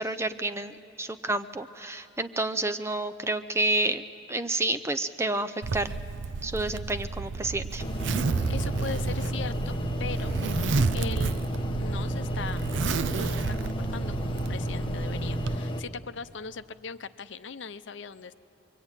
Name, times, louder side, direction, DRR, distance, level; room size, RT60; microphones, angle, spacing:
voice 1, 0.0-4.0 4.3-5.9 6.4-7.8, right 2 dB, 15° right, 9 dB, 0.6 m, -29 dB
Zipper (clothing), 5.6-15.6, right 4 dB, 75° right, 0.5 m, -31 dB
sound 1, 7.8-15.8, equal, 25° left, 1.1 m, -32 dB
voice 2, 8.5-9.7 10.0-10.3 10.9-11.3 11.8-12.6 13.1-18.3, left 5 dB, 75° left, 12 dB, 0.7 m, -39 dB
25.5 x 23.0 x 9.0 m, 2.7 s
head